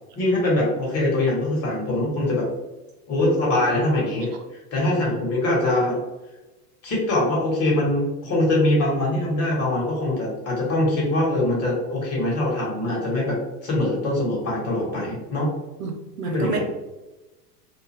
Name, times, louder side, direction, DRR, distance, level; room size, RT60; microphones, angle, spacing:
voice 1, 0.1-2.4 3.1-4.3 4.7-6.0 6.8-13.3 13.6-15.5 16.2-16.6, left 1 dB, 30° left, -3 dB, 1.4 m, -23 dB
voice 2, 15.8-16.6, right 5 dB, 80° right, 3 dB, 0.7 m, -29 dB
2.7 x 2.2 x 3.1 m, 1.1 s
hypercardioid pair, 95°, 46 cm